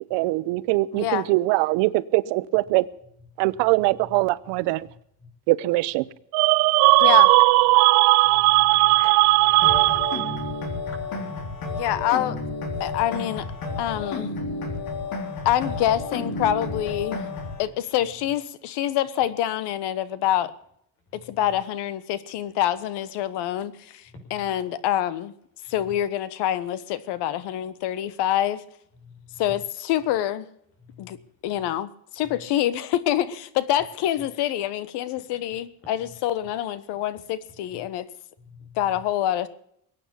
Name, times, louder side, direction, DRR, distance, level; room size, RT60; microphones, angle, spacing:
voice 1, 0.1-2.9 3.4-4.9 5.5-6.1, right 20 dB, 90° right, 18 dB, 0.9 m, -22 dB
voice 2, 0.9-1.3 7.0-7.3 11.7-12.4 12.8-13.5 13.8-14.3 15.4-17.2 17.6-20.5 21.3-25.3 25.7-28.6 29.4-30.5 31.0-31.2 31.4-38.1 38.8-39.5, left 12 dB, 70° left, 17 dB, 1.4 m, -26 dB
sound 1, 6.3-10.5, right 22 dB, 65° right, 0.6 m, -17 dB
voice 3, 8.2-11.3 14.7-14.9 21.1-21.5 24.1-24.6 25.7-26.0 29.0-29.6 30.8-31.2 31.5-31.7 32.2-32.5 34.2-34.3 36.0-36.2 37.7-37.9 38.4-39.0, left 4 dB, 30° left, 4 dB, 5.5 m, -46 dB
sound 2, 9.6-17.6, left 3 dB, 55° left, 3.8 m, -31 dB
22.0 x 9.2 x 7.0 m, 0.71 s
cardioid pair, 160°, 42 cm